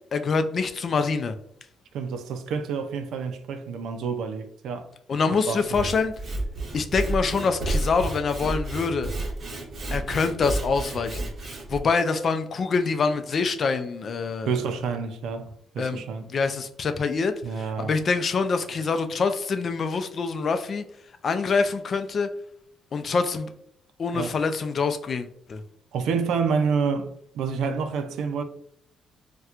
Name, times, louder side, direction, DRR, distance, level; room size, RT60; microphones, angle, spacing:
voice 1, 0.1-1.3 5.1-6.1 6.7-9.1 9.9-14.5 15.8-16.0 16.3-20.8 21.2-22.3 22.9-23.5 24.0-25.6, left 4 dB, 50° left, 0.4 m, -25 dB
voice 2, 1.9-4.9 5.3-5.9 14.5-16.3 17.4-18.0 24.1-24.3 25.9-28.4, right 5 dB, 80° right, 0.4 m, -28 dB
Sawing / Wood, 5.6-11.8, right 2 dB, 50° right, 0.8 m, -31 dB
4.2 x 2.2 x 2.4 m
cardioid pair, 90°, 0 cm